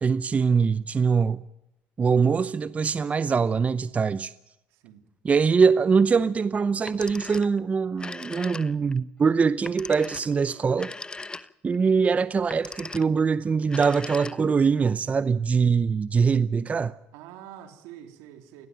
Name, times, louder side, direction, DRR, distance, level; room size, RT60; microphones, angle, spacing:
voice 1, 0.0-1.4 2.0-4.3 5.2-10.9 11.6-16.9, right 5 dB, 30° right, 0.7 m, -23 dB
voice 2, 4.7-5.1 17.1-18.7, right 11 dB, 80° right, 3.4 m, -46 dB
Telephone, 6.7-7.6 7.9-9.0 9.6-11.7 12.4-13.2 13.6-14.7, left 3 dB, 15° left, 0.9 m, -39 dB
22.5 x 18.0 x 7.5 m
supercardioid pair, 95°, 5 cm